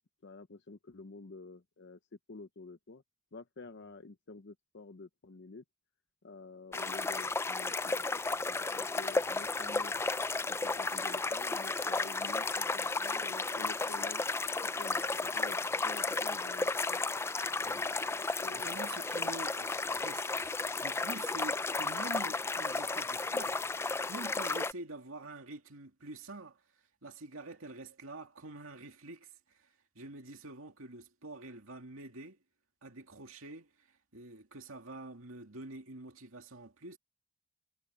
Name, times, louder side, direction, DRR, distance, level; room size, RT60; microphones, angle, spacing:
voice 1, 0.2-2.0 2.3-3.0 3.3-5.6 6.2-8.2 8.5-9.9 10.5-14.2 14.6-15.6 15.8-17.0 17.8-18.7, left 3 dB, 55° left, 0.7 m, -50 dB
sound 1, 6.7-24.7, left 3 dB, 10° left, 0.3 m, -33 dB
voice 2, 17.6-18.1 18.5-23.6 24.1-32.4 32.8-37.0, right 2 dB, 70° right, 2.5 m, -47 dB
head